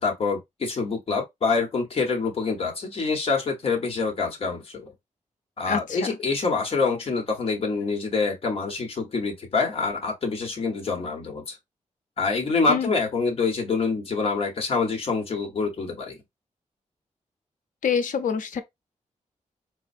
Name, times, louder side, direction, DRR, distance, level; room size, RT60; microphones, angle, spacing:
voice 1, 0.0-4.9 5.6-11.6 12.2-16.2, left 4 dB, 45° left, 1.0 m, -26 dB
voice 2, 5.7-6.2 12.7-12.9 17.8-18.6, left 6 dB, 85° left, 0.6 m, -26 dB
4.1 x 2.1 x 2.6 m
wide cardioid pair, 165°, 13 cm